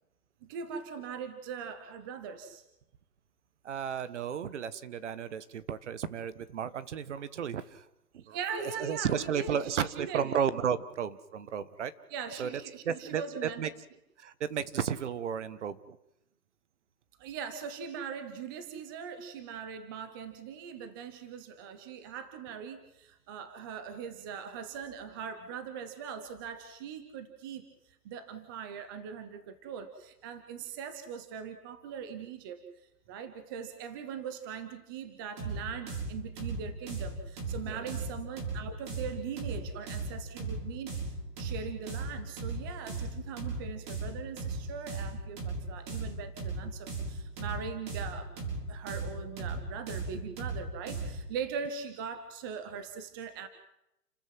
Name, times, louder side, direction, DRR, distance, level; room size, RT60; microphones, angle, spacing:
voice 1, 0.4-2.6 8.3-10.3 12.1-13.6 17.2-27.7 28.0-32.7 33.1-41.1 41.4-48.3 48.7-53.5, right 7 dB, 15° right, 9 dB, 0.8 m, -41 dB
voice 2, 3.6-7.8 8.1-8.4 8.6-11.9 12.3-12.5 12.8-13.7 14.2-16.0 37.7-37.9, right 8 dB, 45° right, 15 dB, 1.4 m, -33 dB
sound 1, 35.4-51.3, right 3 dB, 30° right, 6.7 m, -37 dB
30.0 x 14.0 x 7.7 m, 0.87 s
hypercardioid pair, 160°, 48 cm